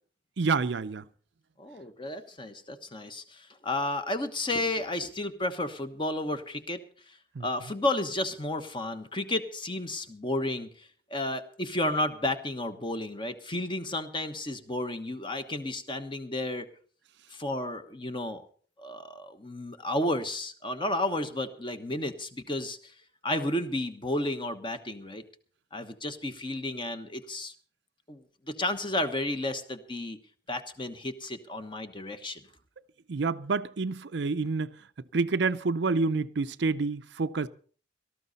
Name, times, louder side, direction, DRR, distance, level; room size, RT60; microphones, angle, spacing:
voice 1, 0.4-1.0 7.4-7.5 33.1-34.7 35.1-37.5, right 4 dB, 65° right, 0.6 m, -28 dB
voice 2, 1.6-6.8 7.4-16.7 17.3-18.4 18.8-22.9 23.2-25.2 25.7-27.5 28.1-30.2 30.5-32.4, left 1 dB, 25° left, 1.2 m, -32 dB
18.0 x 13.5 x 4.1 m
head